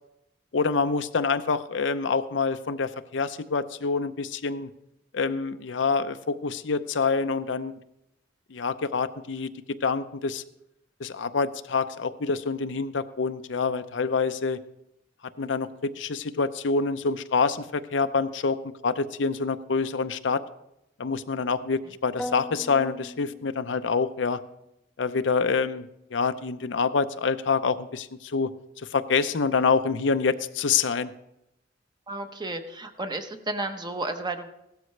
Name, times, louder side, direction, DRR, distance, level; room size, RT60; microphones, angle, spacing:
voice 1, 0.5-4.7 5.1-7.7 8.5-9.5 9.8-10.4 11.0-14.6 15.4-18.6 18.8-20.4 21.0-24.4 25.0-28.5 28.8-31.1, left 4 dB, 80° left, 11 dB, 0.6 m, -26 dB
sound 1, 22.2-24.2, left 1 dB, 5° left, 0.4 m, -39 dB
voice 2, 32.1-34.5, right 2 dB, 25° right, 7 dB, 0.9 m, -32 dB
16.5 x 13.0 x 3.2 m, 0.83 s
head